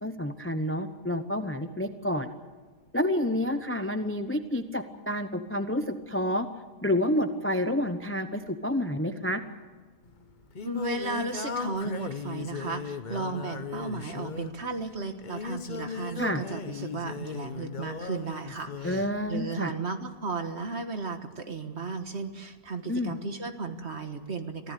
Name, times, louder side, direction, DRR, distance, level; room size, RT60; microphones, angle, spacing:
voice 1, 0.0-2.3 2.9-6.5 6.8-9.4 16.2-16.4 18.8-19.7 22.9-23.1, left 1 dB, 10° left, 9 dB, 0.7 m, -29 dB
Singing, 10.0-19.1, left 5 dB, 35° left, 0.9 m, -37 dB
voice 2, 10.6-24.7, right 3 dB, 45° right, 7 dB, 1.6 m, -35 dB
24.5 x 15.5 x 8.3 m, 1.4 s
omnidirectional pair, 1.7 m